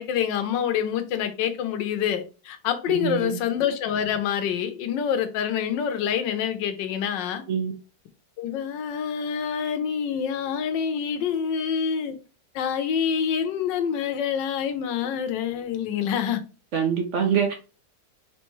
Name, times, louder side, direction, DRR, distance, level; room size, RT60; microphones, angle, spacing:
voice 1, 0.0-7.4 8.4-12.1 12.5-16.4, left 8 dB, 70° left, 1.3 m, -26 dB
voice 2, 2.9-3.4 7.5-7.7 16.7-17.5, right 7 dB, 70° right, 0.7 m, -24 dB
4.5 x 3.4 x 3.1 m
omnidirectional pair, 2.1 m